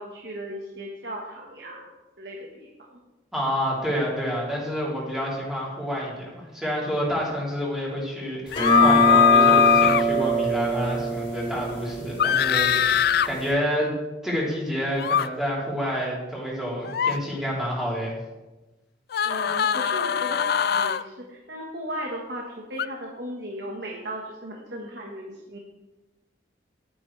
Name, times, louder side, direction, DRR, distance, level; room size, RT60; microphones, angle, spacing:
voice 1, 0.0-1.9 2.2-3.0 19.2-20.4 20.7-22.4 22.7-25.6, right 1 dB, 65° right, -1 dB, 1.4 m, -36 dB
voice 2, 3.3-13.9 14.2-18.1, equal, 5° right, -6 dB, 3.2 m, -28 dB
sound 1, 8.5-10.0 12.2-13.3 15.0-15.3 16.8-17.2 19.1-21.0 22.8-22.9, left 8 dB, 60° left, 0.3 m, -20 dB
sound 2, 8.5-13.5, right 2 dB, 30° left, 2.8 m, -24 dB
12.0 x 9.7 x 3.3 m, 1.1 s
head